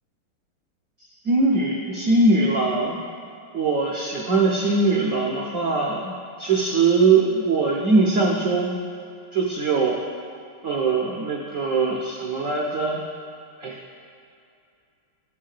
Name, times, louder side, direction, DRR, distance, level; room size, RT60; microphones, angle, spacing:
voice 1, 1.2-3.0 3.5-6.1 6.4-8.7 9.3-10.0 10.6-13.0 13.6-13.8, right 3 dB, 75° right, -2 dB, 0.7 m, -21 dB
8.9 x 3.6 x 6.5 m, 2.5 s
omnidirectional pair, 2.3 m